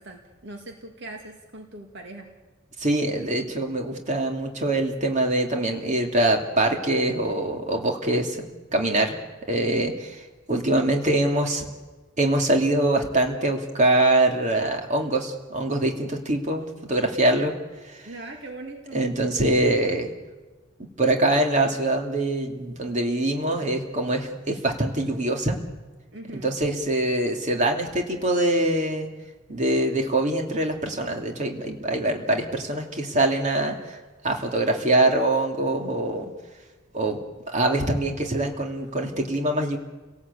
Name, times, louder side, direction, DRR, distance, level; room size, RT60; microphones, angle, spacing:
voice 1, 0.0-2.3 18.1-19.0 26.1-26.5, right 2 dB, 60° right, 3 dB, 2.2 m, -40 dB
voice 2, 2.8-8.4 8.7-9.1 9.5-11.6 12.2-17.5 17.9-18.0 18.9-20.1 21.0-25.6 26.3-29.1 29.5-34.0 34.2-36.3 36.9-37.2 37.5-39.8, right 1 dB, 35° right, 2 dB, 2.8 m, -24 dB
30.0 x 18.0 x 8.4 m, 1.2 s
head